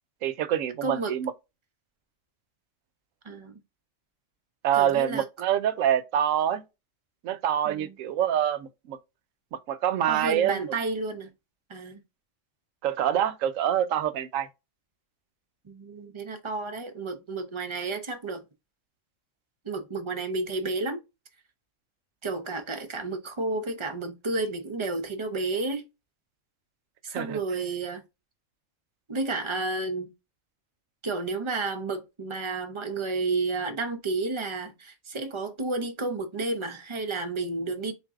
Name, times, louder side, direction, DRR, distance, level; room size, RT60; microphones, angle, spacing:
voice 1, 0.2-1.3 4.6-6.6 7.2-9.0 9.5-10.7 12.8-14.5 27.1-27.4, right 10 dB, 80° right, 1.0 m, -26 dB
voice 2, 0.8-1.1 3.2-3.6 4.7-5.2 7.7-7.9 10.1-11.3 11.7-12.0 15.6-18.4 19.6-21.0 22.2-25.8 27.0-28.0 29.1-30.1 31.0-37.9, right 3 dB, 45° right, 0.4 m, -31 dB
4.0 x 2.6 x 3.5 m
omnidirectional pair, 1.4 m